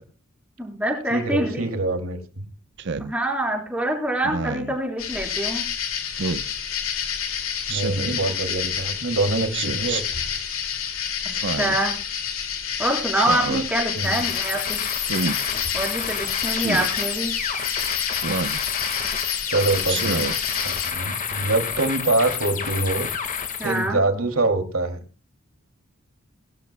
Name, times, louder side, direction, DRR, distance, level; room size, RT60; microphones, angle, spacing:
voice 1, 0.6-1.6 3.0-5.6 11.6-12.0 12.8-14.8 15.7-17.3 23.6-24.0, right 1 dB, 5° right, 0 dB, 4.1 m, -25 dB
voice 2, 1.1-2.4 7.7-10.0 14.0-14.2 19.5-20.2 20.6-23.1 23.6-25.0, right 2 dB, 85° right, 5 dB, 2.6 m, -24 dB
Speech synthesizer, 2.8-3.1 4.2-4.8 6.2-6.5 7.7-8.2 9.5-10.0 11.3-11.8 13.1-13.7 15.0-15.4 16.6-16.9 18.2-18.6 19.9-20.4, right 4 dB, 60° right, 0.8 m, -28 dB
sound 1, 5.0-20.9, left 8 dB, 75° left, 2.6 m, -29 dB
sound 2, 14.0-23.9, left 7 dB, 40° left, 1.7 m, -29 dB
21.0 x 13.0 x 2.2 m, 0.33 s
head